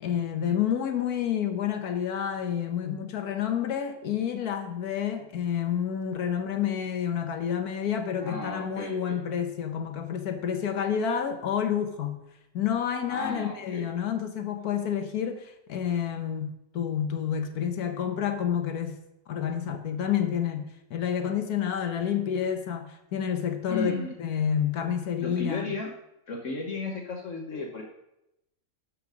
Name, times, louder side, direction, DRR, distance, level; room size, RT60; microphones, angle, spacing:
voice 1, 0.0-12.2 12.5-19.0 19.3-23.9 24.2-25.7, left 8 dB, 85° left, 1.5 m, -29 dB
voice 2, 8.2-9.2 13.1-13.9 23.7-24.1 25.2-25.9 26.3-27.8, left 3 dB, 60° left, 1.3 m, -34 dB
12.5 x 4.9 x 5.0 m
omnidirectional pair, 1.6 m